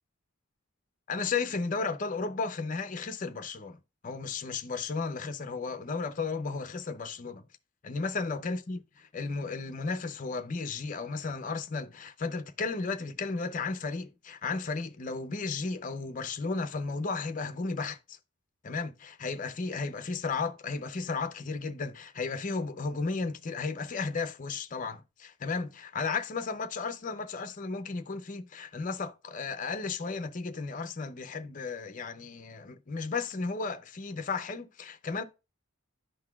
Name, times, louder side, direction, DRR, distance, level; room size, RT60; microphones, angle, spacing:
voice 1, 1.1-7.4 7.8-18.2 18.6-35.2, left 4 dB, 35° left, 0.5 m, -34 dB
11.5 x 3.9 x 2.3 m
head